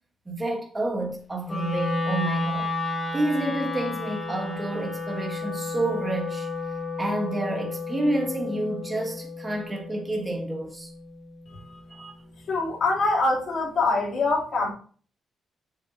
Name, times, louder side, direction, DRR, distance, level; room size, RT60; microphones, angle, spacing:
voice 1, 0.3-2.7 3.1-6.5 7.0-10.9 11.9-12.2, right 1 dB, 15° right, 1.5 m, -29 dB
Wind instrument woodwind instrument, 1.4-11.6, left 3 dB, 10° left, 4.0 m, -32 dB
voice 2, 12.5-14.7, left 3 dB, 50° left, 3.3 m, -24 dB
7.1 x 6.9 x 2.9 m
cardioid pair, 135°, 0 cm